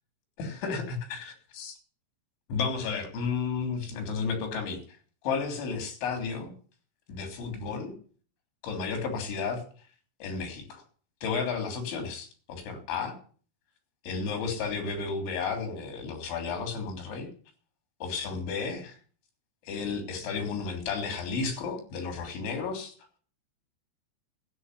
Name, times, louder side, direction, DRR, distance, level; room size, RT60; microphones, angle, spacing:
voice 1, 0.4-1.8 2.5-5.0 5.2-6.5 7.1-8.0 8.6-9.6 10.2-10.8 11.2-13.2 14.0-17.3 18.0-19.0 19.6-22.9, left 5 dB, 85° left, 5 dB, 5.6 m, -33 dB
13.0 x 9.0 x 9.8 m, 0.43 s
omnidirectional pair, 5.2 m